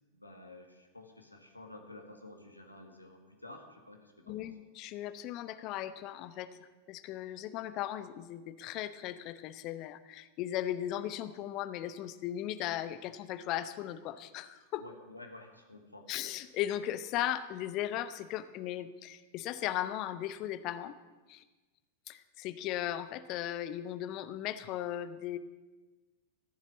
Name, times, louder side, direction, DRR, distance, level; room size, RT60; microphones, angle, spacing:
voice 1, 0.1-4.5 14.8-16.3, left 2 dB, 85° left, 3 dB, 1.9 m, -51 dB
voice 2, 4.3-14.8 16.1-20.9 21.3-21.4 22.1-25.4, left 12 dB, 40° left, 13 dB, 0.8 m, -37 dB
14.5 x 7.3 x 9.9 m, 1.2 s
figure-of-eight pair, 90°, 0 cm